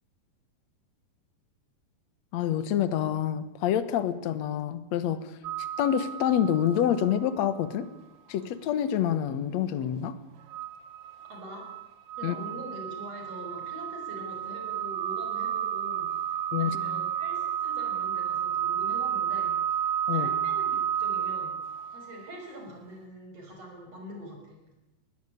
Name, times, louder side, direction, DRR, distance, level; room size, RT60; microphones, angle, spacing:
voice 1, 2.3-7.9 8.3-10.2 12.2-12.4 16.5-16.8 20.1-20.3, left 9 dB, 60° left, 13 dB, 1.9 m, -27 dB
sound 1, 5.4-7.3 7.8-7.9 10.5-22.4, right 9 dB, 65° right, 1.8 m, -32 dB
voice 2, 11.3-11.7 12.2-19.5 20.1-21.6 21.9-24.6, equal, 40° right, 2 dB, 7.2 m, -44 dB
21.0 x 18.5 x 10.0 m, 0.99 s
omnidirectional pair, 4.5 m